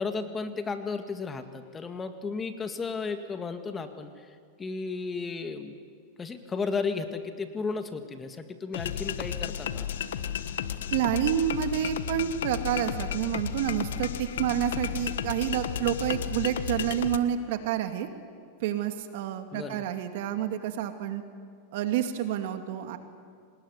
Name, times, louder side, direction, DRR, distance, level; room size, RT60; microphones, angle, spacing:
voice 1, 0.0-5.8 6.2-9.9 19.5-19.8, left 4 dB, 20° left, 7 dB, 1.9 m, -34 dB
sound 1, 8.7-17.2, left 9 dB, 85° left, 1.3 m, -33 dB
voice 2, 10.9-18.1 18.6-21.2 21.7-23.0, right 10 dB, 65° right, 7 dB, 2.3 m, -29 dB
25.5 x 20.0 x 9.7 m, 2.1 s
supercardioid pair, 130°, 0 cm